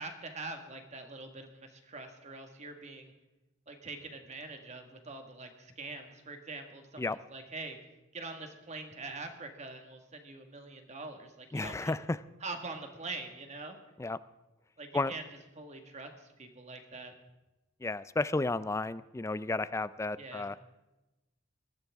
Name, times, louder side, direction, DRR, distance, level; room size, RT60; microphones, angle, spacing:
voice 1, 0.0-3.1 3.7-7.8 8.1-11.9 12.4-13.8 14.8-15.2 15.5-17.1 20.2-20.5, right 3 dB, 35° right, 5 dB, 1.7 m, -44 dB
voice 2, 11.5-12.2 14.0-14.2 14.9-15.1 17.8-20.6, left 2 dB, 15° left, 16 dB, 0.4 m, -32 dB
21.0 x 14.0 x 3.6 m, 1.0 s
head